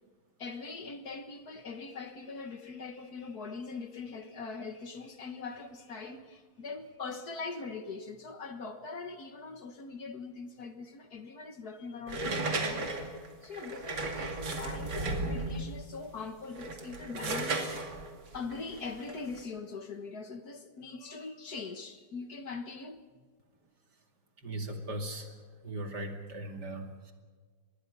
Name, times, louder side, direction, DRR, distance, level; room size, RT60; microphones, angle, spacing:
voice 1, 0.4-12.9 13.4-17.7 18.3-23.0, left 4 dB, 55° left, 1.8 m, -42 dB
sound 1, 12.1-15.7 16.4-19.4, right 2 dB, 75° right, 3.2 m, -35 dB
voice 2, 24.4-25.3 25.6-27.1, right 1 dB, 55° right, 3.0 m, -38 dB
25.5 x 21.5 x 5.6 m
omnidirectional pair, 2.2 m